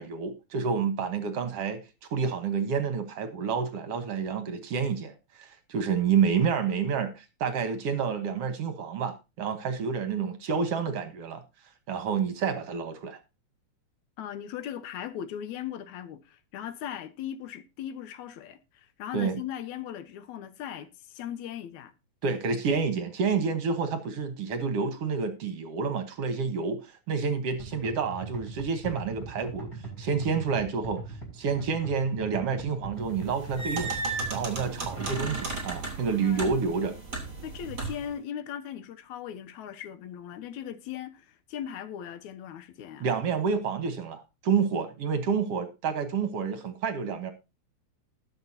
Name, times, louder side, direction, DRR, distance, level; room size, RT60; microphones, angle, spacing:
voice 1, 0.0-1.8 2.1-11.4 11.9-13.2 19.1-19.4 22.2-29.7 30.0-31.0 31.3-33.9 34.3-37.0 43.0-47.3, right 6 dB, 60° right, 2.0 m, -29 dB
voice 2, 14.2-21.9 22.2-22.4 36.2-36.4 37.4-43.1, left 10 dB, 80° left, 2.2 m, -38 dB
sound 1, 27.6-35.6, right 4 dB, 30° left, 5.5 m, -40 dB
sound 2, 33.2-38.1, right 3 dB, 35° right, 3.6 m, -35 dB
19.5 x 6.5 x 2.8 m
omnidirectional pair, 3.3 m